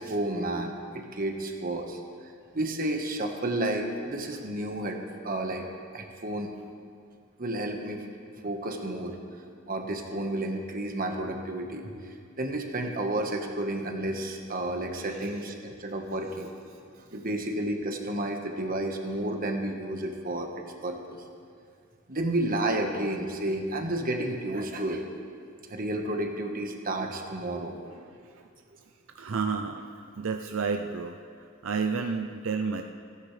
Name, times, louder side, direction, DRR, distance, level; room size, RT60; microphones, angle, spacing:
voice 1, 0.0-2.0 2.5-5.0 5.2-5.6 5.9-6.5 7.4-8.0 8.4-9.2 9.7-16.5 16.9-20.5 20.8-21.2 22.1-25.0 25.7-27.8, right 1 dB, 45° right, 3 dB, 1.4 m, -31 dB
voice 2, 29.1-29.9 30.2-31.2 31.6-32.8, right 5 dB, 75° right, 5 dB, 0.6 m, -30 dB
29.5 x 9.9 x 3.3 m, 2.2 s
head